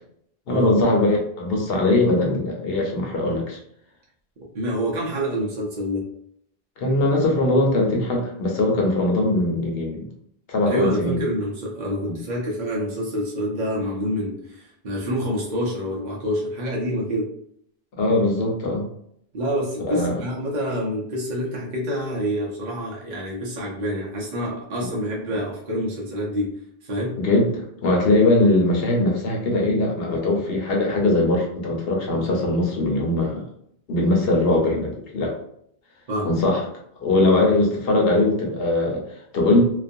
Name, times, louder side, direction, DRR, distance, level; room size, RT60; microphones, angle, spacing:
voice 1, 0.5-3.6 6.8-10.1 10.5-11.2 12.1-12.2 18.0-18.8 19.8-20.2 24.8-24.9 27.2-33.4 33.9-35.4 36.2-36.6 37.0-39.6, left 2 dB, 65° left, 0 dB, 0.9 m, -21 dB
voice 2, 4.5-6.0 10.6-17.3 19.3-26.5 26.8-27.2 36.1-36.3, equal, 50° right, -4 dB, 0.7 m, -27 dB
2.4 x 2.3 x 2.6 m, 0.69 s
omnidirectional pair, 1.1 m